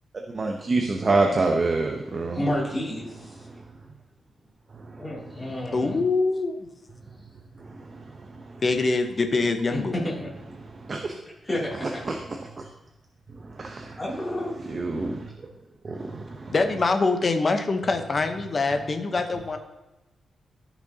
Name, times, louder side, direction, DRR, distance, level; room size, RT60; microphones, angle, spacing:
voice 1, 0.3-2.4 10.7-11.1 12.1-12.4 13.6-14.0 14.7-15.3 15.8-16.5, right 3 dB, 35° right, 3 dB, 0.7 m, -26 dB
voice 2, 2.3-3.1 5.0-6.0 9.7-10.3 11.4-12.0 14.0-14.5, left 1 dB, 15° left, -6 dB, 2.8 m, -30 dB
voice 3, 5.7-6.6 8.6-10.0 16.5-19.6, left 3 dB, 30° left, 6 dB, 0.9 m, -24 dB
14.5 x 6.0 x 2.8 m, 1.0 s
wide cardioid pair, 155°, 0 cm